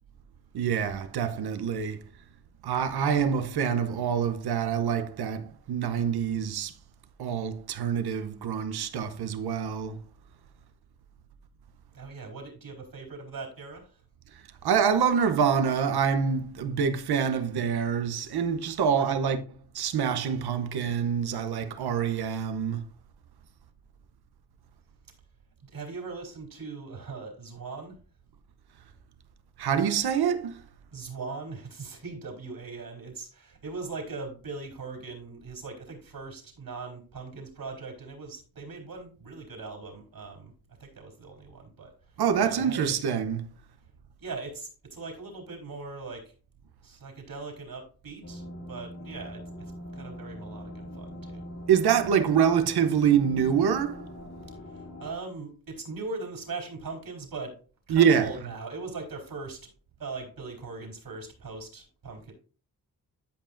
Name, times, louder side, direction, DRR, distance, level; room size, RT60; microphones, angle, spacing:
voice 1, 0.5-2.0 2.6-6.7 7.2-10.0 14.6-22.9 29.6-30.6 42.2-43.5 51.7-54.1 57.9-58.3, right 7 dB, 90° right, 0.8 m, -26 dB
voice 2, 11.9-14.0 19.0-19.4 25.6-28.0 30.9-42.9 44.2-46.3 46.8-51.4 54.6-57.6 57.9-59.7 60.0-62.3, right 3 dB, 70° right, 3.8 m, -40 dB
sound 1, 48.2-55.1, left 1 dB, 45° left, 2.3 m, -42 dB
13.0 x 5.6 x 2.5 m
cardioid pair, 50°, 37 cm